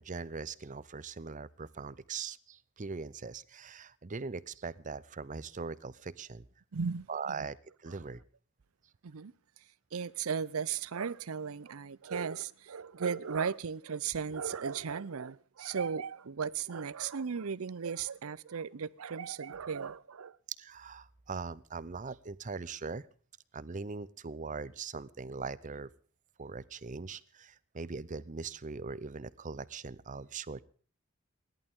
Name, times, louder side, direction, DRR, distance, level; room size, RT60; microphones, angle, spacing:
voice 1, 0.0-6.4 7.1-7.6 7.8-8.2 20.6-23.0 23.5-25.9 26.4-30.6, right 4 dB, 35° right, 0.6 m, -41 dB
voice 2, 6.7-7.5 9.0-9.3 9.9-20.4, right 6 dB, 80° right, 0.6 m, -36 dB
28.5 x 11.5 x 3.7 m
head